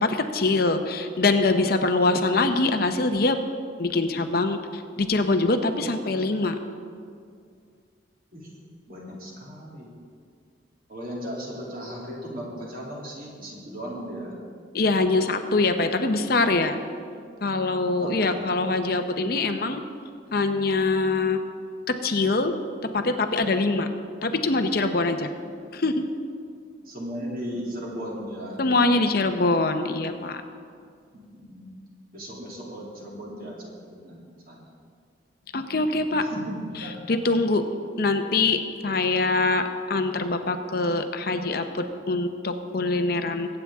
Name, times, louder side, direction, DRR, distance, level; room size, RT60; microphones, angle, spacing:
voice 1, 0.0-3.4 3.8-6.6 14.7-16.8 17.4-19.8 20.3-21.4 21.9-22.5 22.9-23.9 24.2-25.3 25.7-26.0 28.6-30.4 35.5-36.2 36.7-37.6 38.0-43.5, left 3 dB, 55° left, 7 dB, 0.8 m, -24 dB
voice 2, 8.9-9.9 10.9-14.4 18.0-18.5 26.9-28.6 31.1-31.7 32.1-33.6 33.9-34.2 34.5-34.6 36.3-37.2, equal, 50° right, -3 dB, 2.8 m, -36 dB
22.0 x 8.9 x 3.6 m, 2.2 s
head